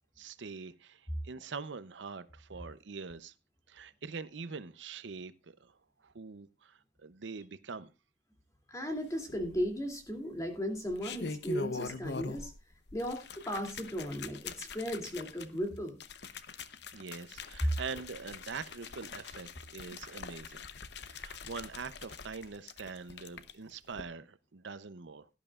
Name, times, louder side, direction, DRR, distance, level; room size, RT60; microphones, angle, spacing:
voice 1, 0.2-3.3 3.7-7.9 16.9-20.6 21.1-25.3, right 5 dB, 70° right, 0.7 m, -44 dB
voice 2, 8.7-12.5 12.9-16.0, equal, 15° left, 2.6 m, -36 dB
sound 1, 9.3-9.9 10.8-12.6 12.9-23.5 23.9-24.0, left 4 dB, 60° left, 0.8 m, -43 dB
17.5 x 11.0 x 2.4 m
head